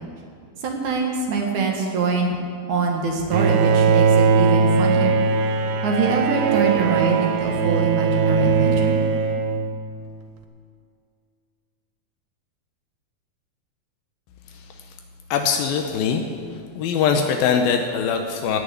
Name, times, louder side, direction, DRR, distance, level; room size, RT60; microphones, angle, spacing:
voice 1, 0.6-2.4 2.7-5.2 5.8-9.0, right 4 dB, 60° right, 1 dB, 2.7 m, -23 dB
Bowed string instrument, 3.3-10.1, right 5 dB, 80° right, 2.8 m, -20 dB
voice 2, 15.3-16.2 16.8-18.6, left 6 dB, 80° left, 4 dB, 2.6 m, -22 dB
16.0 x 6.7 x 9.4 m, 2.3 s
omnidirectional pair, 4.3 m